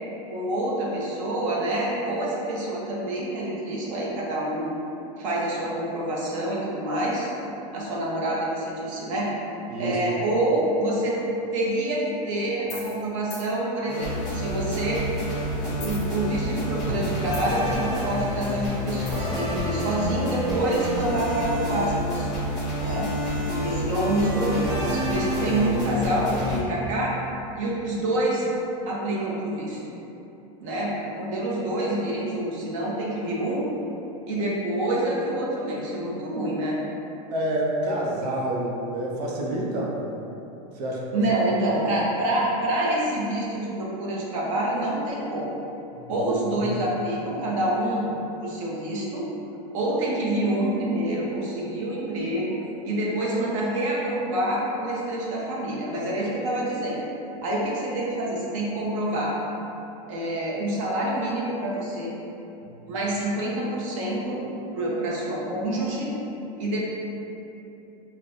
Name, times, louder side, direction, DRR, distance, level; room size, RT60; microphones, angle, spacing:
voice 1, 0.3-4.7 5.2-7.3 7.7-9.3 9.8-11.2 11.5-15.0 15.6-22.4 22.8-23.3 23.6-27.2 27.5-28.5 28.9-29.8 30.6-33.7 34.2-36.8 41.1-45.5 46.1-48.1 48.4-49.3 49.7-52.6 52.8-57.0 57.4-59.3 60.1-62.1 62.9-64.4 64.7-66.1 66.6-66.8, right 1 dB, 55° right, -4 dB, 0.9 m, -27 dB
sound 1, 12.6-13.0 13.3-13.5 15.7-16.6 16.9-17.7 19.1-19.4, left 1 dB, 15° left, 0.4 m, -36 dB
sound 2, 13.9-26.6, equal, ahead, 1.1 m, -28 dB
voice 2, 37.3-40.0 40.8-41.2 46.0-46.3 46.6-46.7, right 1 dB, 85° right, -3 dB, 0.7 m, -28 dB
5.1 x 2.2 x 2.6 m, 2.9 s
supercardioid pair, 175°, 20 cm